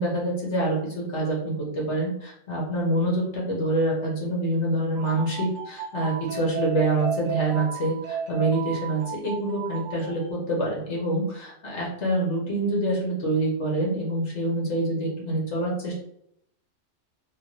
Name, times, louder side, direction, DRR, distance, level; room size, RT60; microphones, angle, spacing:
voice 1, 0.0-15.9, right 1 dB, 65° left, -4 dB, 1.4 m, -26 dB
sound 1, 4.9-10.3, right 8 dB, 65° right, 0.8 m, -34 dB
3.6 x 2.3 x 3.0 m, 0.73 s
omnidirectional pair, 1.3 m